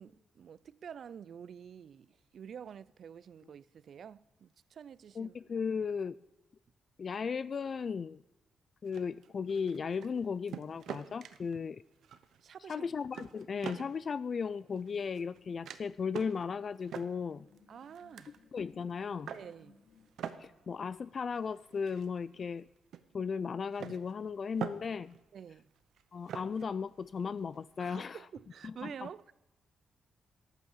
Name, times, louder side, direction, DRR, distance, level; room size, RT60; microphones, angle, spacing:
voice 1, 0.0-5.4 12.4-12.9 17.7-18.3 19.3-19.8 25.3-25.7 27.8-29.3, right 8 dB, 65° right, 0.4 m, -48 dB
voice 2, 5.2-6.2 7.0-8.2 8.8-11.8 12.7-17.5 18.5-19.3 20.4-22.6 23.1-25.1 26.1-28.2 28.6-29.1, left 6 dB, 50° left, 0.3 m, -36 dB
sound 1, 8.9-10.2 10.5-11.6 12.0-12.5 12.8-14.0 14.6-15.4 15.6-15.8 16.1-16.4 16.8-18.4 18.9-19.5 20.0-22.7 22.9-23.0 23.7-25.2 25.5-27.7, right 8 dB, 80° right, 0.9 m, -45 dB
sound 2, 14.4-20.1, left 5 dB, 85° left, 2.8 m, -65 dB
13.0 x 9.0 x 7.2 m
cardioid pair, 90°, 0 cm